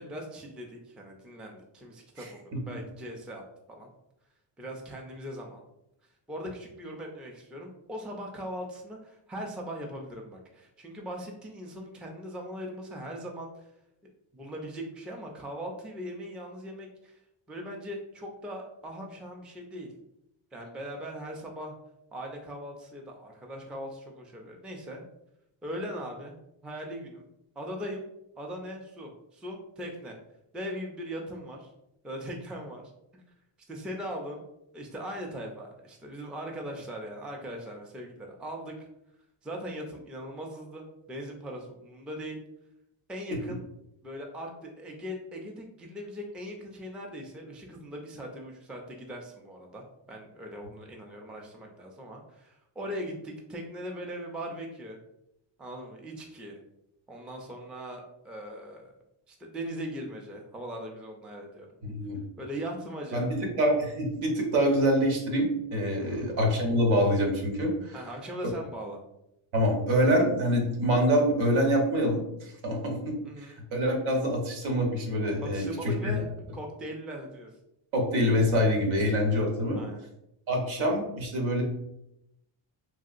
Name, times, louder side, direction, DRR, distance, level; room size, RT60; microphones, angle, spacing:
voice 1, 0.0-3.4 3.7-3.9 4.6-5.6 6.3-13.7 14.3-17.2 17.5-19.9 20.5-21.7 22.1-25.0 25.6-26.3 26.6-27.3 27.6-28.0 28.4-30.2 30.5-31.7 32.0-32.8 33.1-33.2 33.7-34.4 34.7-38.9 39.4-42.4 43.1-43.6 44.0-55.0 55.6-56.6 57.1-58.9 59.3-61.7 62.4-63.4 66.0-66.3 67.9-69.0 73.2-73.6 75.4-76.3 76.5-77.5 79.7-80.0, equal, ahead, 1 dB, 0.3 m, -40 dB
voice 2, 2.2-2.8 61.8-62.2 63.1-63.3 63.6-68.0 69.5-76.2 77.9-79.8 80.5-81.6, equal, 80° right, 1 dB, 1.0 m, -26 dB
3.1 x 2.7 x 2.4 m, 0.82 s
cardioid pair, 110°, 47 cm